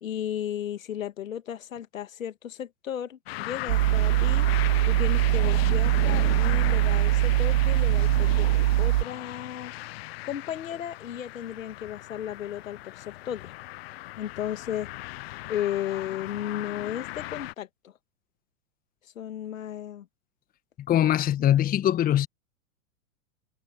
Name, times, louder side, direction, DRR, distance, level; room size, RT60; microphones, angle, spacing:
voice 1, 0.0-8.5 8.8-9.7 10.2-13.5 14.2-14.9 15.5-17.9 19.2-20.1, left 10 dB, 65° left, 2.1 m, -34 dB
sound 1, 3.3-17.5, left 18 dB, 45° left, 0.8 m, -37 dB
sound 2, 3.7-9.0, right 17 dB, 45° right, 0.6 m, -22 dB
voice 2, 20.9-22.3, left 11 dB, 20° left, 1.3 m, -22 dB
figure-of-eight pair, 105°, 43 cm